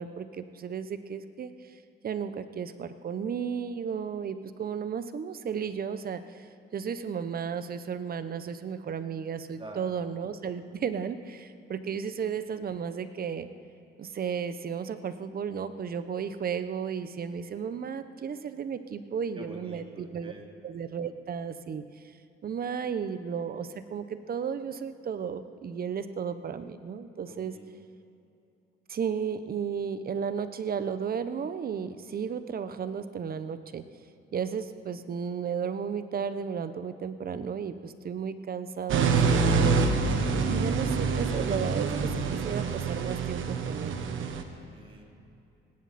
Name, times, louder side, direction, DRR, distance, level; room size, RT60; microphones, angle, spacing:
voice 1, 0.0-13.5 14.0-20.3 20.6-22.0 22.4-27.6 28.9-33.9 34.3-39.8 40.4-44.0, right 7 dB, 50° right, 11 dB, 1.0 m, -34 dB
voice 2, 9.6-9.9 19.4-20.4 27.3-27.7 44.7-45.0, right 2 dB, 25° right, 0 dB, 3.0 m, -46 dB
sound 1, 38.9-44.4, right 4 dB, 80° right, 1.4 m, -26 dB
19.0 x 17.0 x 4.3 m, 2.8 s
cardioid pair, 90°, 20 cm